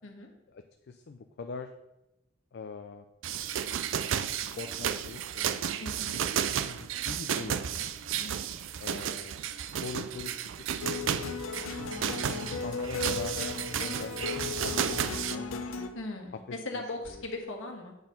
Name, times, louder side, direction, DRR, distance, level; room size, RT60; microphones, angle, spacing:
voice 1, 0.9-1.7 2.5-3.0 3.6-5.5 6.5-7.9 8.8-10.5 12.3-15.7, left 4 dB, 55° left, 6 dB, 0.4 m, -43 dB
sound 1, 3.2-15.4, right 9 dB, 70° right, 0.4 m, -33 dB
voice 2, 5.8-6.2 8.2-8.5 15.9-17.9, left 2 dB, 70° left, 2 dB, 1.4 m, -39 dB
sound 2, 10.8-15.9, left 4 dB, 90° left, 0.7 m, -36 dB
7.9 x 4.4 x 5.2 m, 0.91 s
head